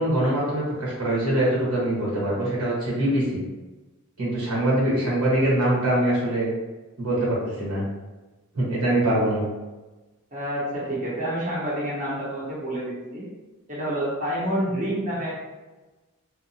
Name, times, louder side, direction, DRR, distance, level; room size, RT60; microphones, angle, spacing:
voice 1, 0.0-3.4 4.2-6.5 7.0-7.8 8.5-9.4, right 1 dB, 85° right, -6 dB, 1.2 m, -23 dB
voice 2, 10.3-13.3 13.7-15.4, right 1 dB, 35° right, -7 dB, 0.7 m, -28 dB
2.8 x 2.2 x 2.6 m, 1.2 s
head